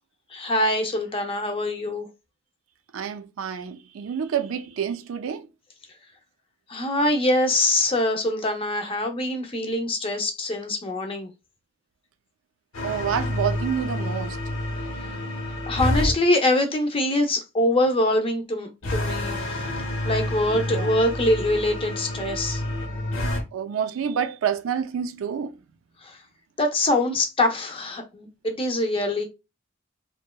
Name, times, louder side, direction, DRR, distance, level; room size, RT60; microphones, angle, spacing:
voice 1, 0.3-2.1 6.7-11.3 15.7-19.6 20.0-22.6 26.6-29.3, left 1 dB, 25° left, 0.5 m, -24 dB
voice 2, 2.9-5.5 12.8-14.4 20.5-20.9 23.5-25.5, right 8 dB, 80° right, 0.4 m, -28 dB
sound 1, 12.7-16.1 18.8-23.4, left 1 dB, 90° left, 0.8 m, -28 dB
2.7 x 2.1 x 2.2 m
head